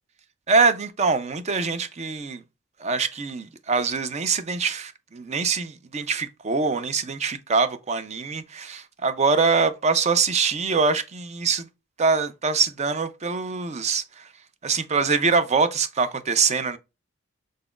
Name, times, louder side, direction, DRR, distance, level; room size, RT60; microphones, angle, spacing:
voice 1, 0.5-2.4 2.8-11.7 12.0-14.2 14.6-16.8, right 4 dB, 35° right, 0.5 m, -24 dB
4.0 x 3.8 x 2.4 m
head